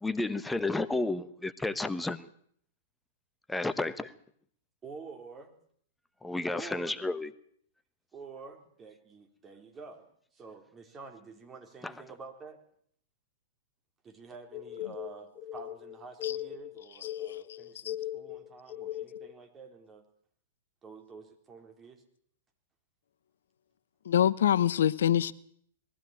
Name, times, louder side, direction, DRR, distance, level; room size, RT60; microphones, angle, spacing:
voice 1, 0.0-2.3 3.5-4.1 6.2-7.3 11.8-11.9, left 2 dB, 5° left, 1.1 m, -32 dB
voice 2, 4.8-5.5 6.5-7.0 8.1-12.6 14.0-20.0 20.8-22.0, right 4 dB, 20° right, 3.9 m, -48 dB
sound 1, 14.5-19.4, left 13 dB, 20° left, 1.9 m, -39 dB
voice 3, 24.0-25.3, left 10 dB, 75° left, 0.9 m, -25 dB
21.0 x 15.5 x 9.1 m
hypercardioid pair, 115°, 0 cm